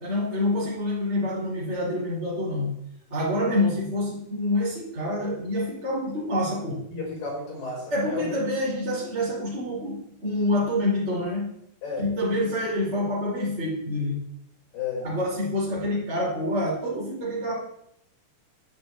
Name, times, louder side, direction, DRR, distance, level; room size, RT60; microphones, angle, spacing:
voice 1, 0.0-2.7 3.1-6.8 7.9-11.5 12.0-14.2 15.0-17.5, left 1 dB, 20° right, -7 dB, 4.6 m, -27 dB
voice 2, 6.9-8.3 11.8-12.4 14.7-15.0, left 4 dB, 65° left, -3 dB, 6.9 m, -33 dB
11.0 x 6.6 x 8.8 m, 0.77 s
omnidirectional pair, 4.2 m